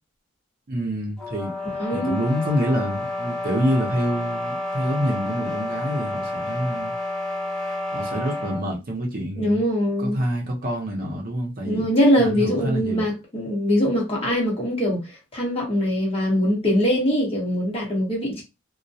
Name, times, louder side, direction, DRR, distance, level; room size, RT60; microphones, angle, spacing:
voice 1, 0.7-1.5 1.9-6.9 7.9-9.6 10.0-11.9 12.2-13.1, equal, 50° right, 0.6 m, -26 dB
sound 1, 1.2-8.7, left 2 dB, 5° left, 0.6 m, -30 dB
voice 2, 1.8-2.2 9.4-10.2 11.7-18.4, equal, 30° left, 1.0 m, -22 dB
2.2 x 2.1 x 2.6 m
head